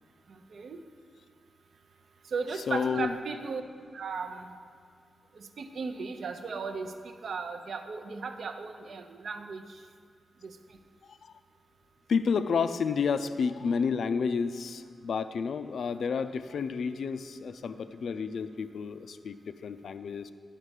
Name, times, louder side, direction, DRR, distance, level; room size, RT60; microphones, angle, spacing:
voice 1, 0.5-0.8 2.3-3.6 3.9-4.5 5.4-6.9 7.2-9.6 10.4-10.5, right 4 dB, 70° right, 7 dB, 0.5 m, -36 dB
voice 2, 2.7-3.2 11.2-11.3 12.1-20.3, left 5 dB, 75° left, 11 dB, 0.3 m, -30 dB
10.5 x 5.2 x 4.9 m, 2.1 s
wide cardioid pair, 105°, 0 cm